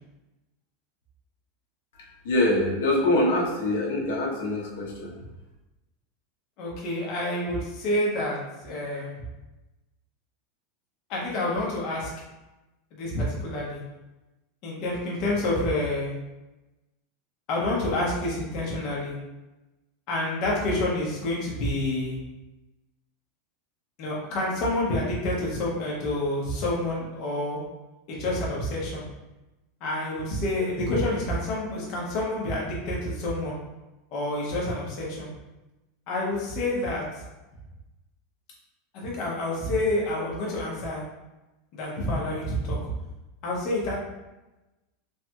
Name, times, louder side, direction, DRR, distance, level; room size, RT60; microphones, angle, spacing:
voice 1, 2.2-5.1, left 1 dB, 80° left, -3 dB, 0.8 m, -24 dB
voice 2, 6.6-8.4 8.6-9.2 11.1-12.1 12.9-13.8 14.6-16.1 17.5-19.2 20.1-22.2 24.0-27.6 28.1-29.0 29.8-33.6 34.1-35.3 36.1-37.1 38.9-41.0 41.7-42.9 43.4-44.0, left 1 dB, 40° left, -4 dB, 0.7 m, -28 dB
3.1 x 2.8 x 2.2 m, 1.0 s
supercardioid pair, 170°, 0 cm